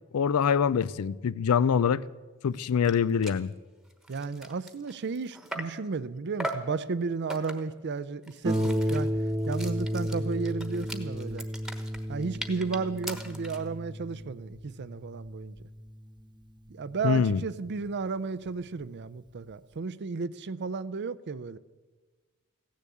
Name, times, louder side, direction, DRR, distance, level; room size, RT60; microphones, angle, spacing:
voice 1, 0.1-2.0 2.4-3.5 17.0-17.4, left 7 dB, 85° left, 0.4 m, -24 dB
sound 1, 2.6-2.7 2.8-3.0 3.2-3.5 3.9-5.9 6.4-6.8 7.3-7.8 8.2-13.7, right 1 dB, ahead, 1.2 m, -40 dB
voice 2, 4.1-9.1 9.5-11.5 12.1-15.6 16.7-21.6, right 4 dB, 50° right, 0.5 m, -33 dB
Harp, 8.4-17.6 18.5-18.6 19.0-19.1, equal, 20° right, 1.0 m, -33 dB
15.5 x 10.5 x 8.5 m
head